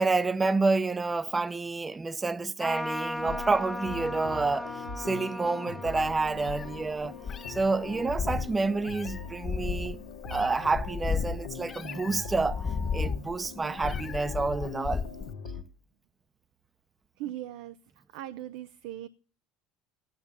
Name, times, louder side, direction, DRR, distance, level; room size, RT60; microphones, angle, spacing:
voice 1, 0.0-7.1 7.5-10.0 10.3-15.1, right 3 dB, 20° right, 0.7 m, -29 dB
Trumpet, 2.6-8.4, left 1 dB, 10° left, 1.0 m, -38 dB
sound 1, 3.2-15.6, left 5 dB, 80° left, 1.5 m, -42 dB
Meow, 6.0-15.3, left 5 dB, 35° left, 1.7 m, -35 dB
voice 2, 17.2-17.8 18.1-19.1, right 13 dB, 70° right, 0.5 m, -39 dB
12.5 x 9.1 x 7.0 m
hypercardioid pair, 75°, 0 cm